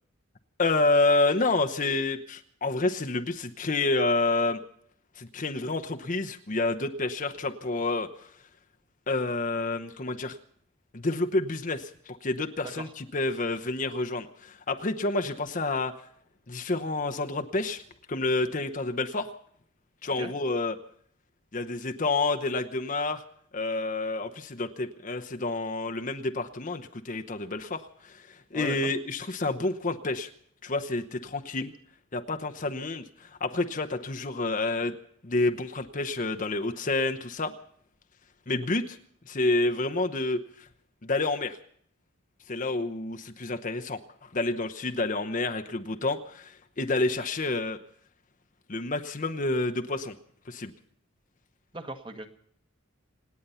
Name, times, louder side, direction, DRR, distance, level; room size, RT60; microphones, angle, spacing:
voice 1, 0.6-4.6 5.2-8.3 9.1-10.4 10.9-15.9 16.5-17.8 18.1-19.3 20.0-20.8 21.5-23.2 23.5-30.3 30.6-31.7 32.1-34.9 35.2-37.5 38.5-39.0 39.3-40.7 41.0-41.6 42.5-47.8 48.7-50.2 50.5-50.7, left 2 dB, 35° left, 6 dB, 0.9 m, -29 dB
voice 2, 28.5-28.9 51.7-52.4, right 2 dB, 25° right, 6 dB, 1.5 m, -38 dB
27.0 x 9.5 x 5.6 m, 0.64 s
head